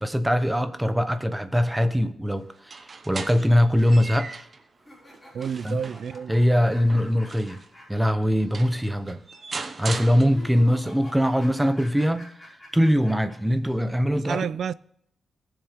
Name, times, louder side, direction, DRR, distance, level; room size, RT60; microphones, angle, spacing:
voice 1, 0.0-2.8 3.1-4.4 5.6-5.8 6.3-7.6 7.9-9.2 9.8-12.3 12.7-14.5, equal, 5° right, 0.8 m, -22 dB
sound 1, 2.6-4.6 5.1-7.7 8.2-8.3 8.5-10.8, right 4 dB, 35° right, 0.9 m, -38 dB
sound 2, 4.8-8.5 8.7-8.8 10.2-13.3, left 1 dB, 10° left, 5.3 m, -47 dB
voice 2, 5.3-6.4 14.2-14.7, right 7 dB, 70° right, 0.4 m, -30 dB
19.0 x 7.2 x 3.6 m
wide cardioid pair, 150°, 0 cm